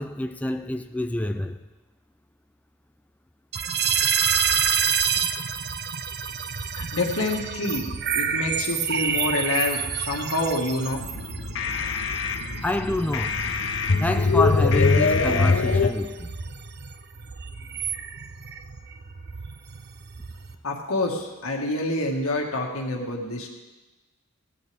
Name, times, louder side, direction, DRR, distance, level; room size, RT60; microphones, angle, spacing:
voice 1, 0.0-1.6 12.6-13.4 13.7-16.3, left 1 dB, 5° left, 0.3 m, -28 dB
sound 1, 3.5-20.6, right 7 dB, 50° right, 0.7 m, -29 dB
voice 2, 6.7-11.1 20.6-23.5, left 2 dB, 90° left, 2.0 m, -27 dB
sound 2, 10.9-15.9, left 4 dB, 60° left, 0.8 m, -23 dB
17.0 x 12.0 x 3.5 m
head